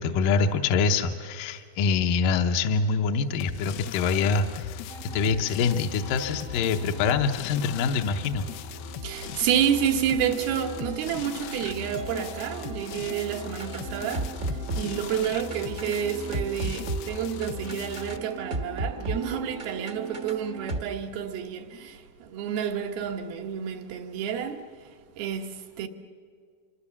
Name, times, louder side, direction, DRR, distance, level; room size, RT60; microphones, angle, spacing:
voice 1, 0.0-4.8 5.1-8.5, left 5 dB, 70° left, 2.3 m, -25 dB
sound 1, 3.4-18.2, left 8 dB, 85° left, 2.7 m, -39 dB
sound 2, 4.9-20.8, right 3 dB, 50° right, 0.8 m, -37 dB
voice 2, 9.0-24.6 25.2-25.9, right 8 dB, 80° right, 3.3 m, -29 dB
26.0 x 24.5 x 7.2 m
omnidirectional pair, 4.3 m